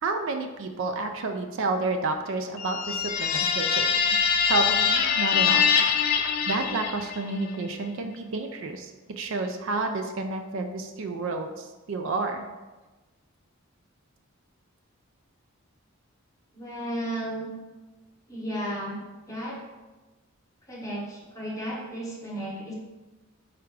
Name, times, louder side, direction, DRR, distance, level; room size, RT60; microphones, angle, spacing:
voice 1, 0.0-3.9 4.5-5.7 6.5-12.5, right 3 dB, 60° right, 6 dB, 0.4 m, -30 dB
sound 1, 2.6-7.3, left 6 dB, 45° left, 0.3 m, -24 dB
voice 2, 16.5-17.5 18.3-19.0 19.3-19.6 20.7-22.7, right 1 dB, 15° left, -4 dB, 0.9 m, -33 dB
4.5 x 2.5 x 4.6 m, 1.2 s
head